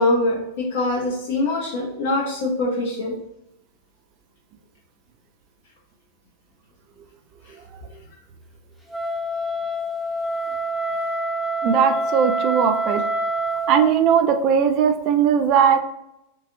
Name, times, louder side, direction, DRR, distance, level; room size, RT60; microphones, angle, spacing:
voice 1, 0.0-3.1, left 2 dB, 50° left, -3 dB, 0.7 m, -23 dB
Wind instrument woodwind instrument, 8.9-13.9, right 1 dB, ahead, 0.6 m, -26 dB
voice 2, 11.6-13.0 13.7-15.8, right 7 dB, 40° right, 7 dB, 0.4 m, -18 dB
3.8 x 2.6 x 2.5 m, 0.84 s
figure-of-eight pair, 90°, 0 cm